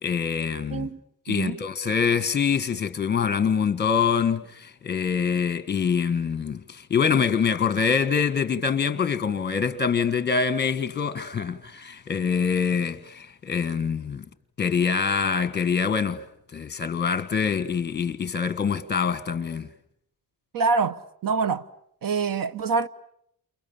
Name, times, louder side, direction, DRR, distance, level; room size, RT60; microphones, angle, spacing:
voice 1, 0.0-0.9 1.3-14.3 14.6-16.2 16.5-19.7, left 6 dB, 30° left, 1.4 m, -25 dB
voice 2, 1.3-1.6 20.5-21.7 22.0-22.9, right 4 dB, 70° right, 1.1 m, -25 dB
29.5 x 28.5 x 7.1 m
wide cardioid pair, 170°, 35 cm